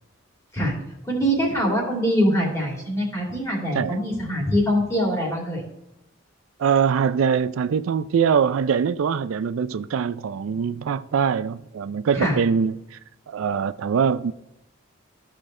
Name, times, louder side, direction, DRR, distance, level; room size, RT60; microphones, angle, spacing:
voice 1, 1.0-5.6 12.1-12.4, equal, 15° left, 2.6 m, -23 dB
voice 2, 6.6-13.0 13.3-14.3, right 6 dB, 80° right, 0.4 m, -23 dB
13.5 x 5.1 x 3.2 m
head